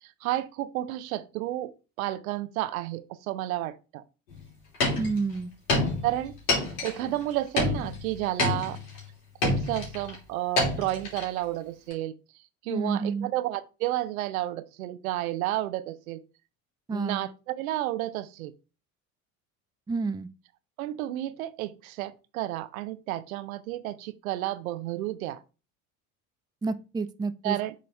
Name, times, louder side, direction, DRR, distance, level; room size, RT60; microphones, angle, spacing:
voice 1, 0.0-4.0 6.0-6.4 6.8-8.8 9.4-12.1 12.6-16.2 16.9-18.5 20.8-25.4 27.4-27.7, right 15 dB, 75° right, 0.7 m, -31 dB
sound 1, 4.3-4.4 4.7-5.3 5.7-7.2 7.6-9.0 9.4-10.2 10.6-11.4 11.9-12.0, left 2 dB, 75° left, 3.1 m, -28 dB
voice 2, 5.0-5.5 12.7-13.3 16.9-17.3 19.9-20.3 26.6-27.6, right 4 dB, 10° right, 0.5 m, -29 dB
8.4 x 3.9 x 3.2 m
hypercardioid pair, 60°, 43 cm